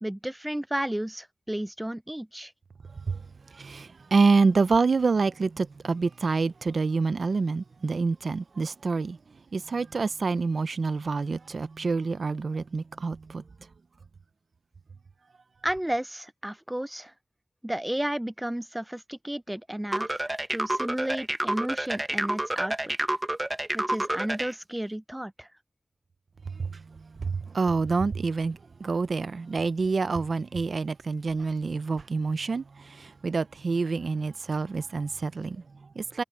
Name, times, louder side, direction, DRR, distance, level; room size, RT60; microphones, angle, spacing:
voice 1, 0.0-2.5 15.6-17.1 17.6-22.9 23.7-25.5, right 1 dB, 15° right, 0.4 m, -32 dB
voice 2, 3.0-9.2 9.5-13.4 26.5-36.2, right 4 dB, 90° right, 0.5 m, -27 dB
sound 1, 19.9-24.5, right 1 dB, 30° right, 1.0 m, -29 dB
cardioid pair, 40°, 0 cm